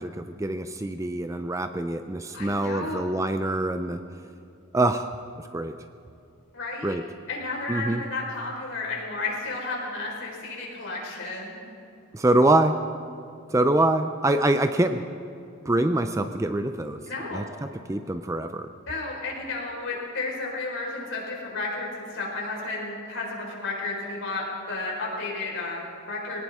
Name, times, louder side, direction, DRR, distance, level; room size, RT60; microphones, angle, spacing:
voice 1, 0.0-4.0 4.7-5.1 5.5-5.8 6.8-7.1 7.7-8.0 12.1-12.8 13.5-15.0 15.7-17.0 17.3-18.7, right 1 dB, 15° right, 8 dB, 0.4 m, -24 dB
voice 2, 2.3-3.1 6.5-7.0 7.3-11.5 17.1-17.4 18.9-26.4, left 3 dB, 60° left, -3 dB, 4.5 m, -32 dB
21.0 x 18.5 x 3.6 m, 2.6 s
head